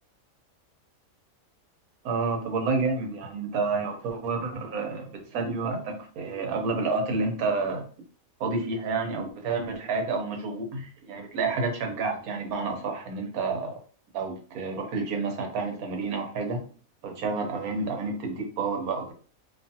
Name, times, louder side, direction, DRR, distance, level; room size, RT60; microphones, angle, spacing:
voice 1, 2.0-7.8 8.4-13.7 14.1-16.6 17.0-19.1, right 4 dB, 90° right, 3 dB, 1.2 m, -29 dB
2.7 x 2.3 x 2.7 m, 0.40 s
omnidirectional pair, 1.5 m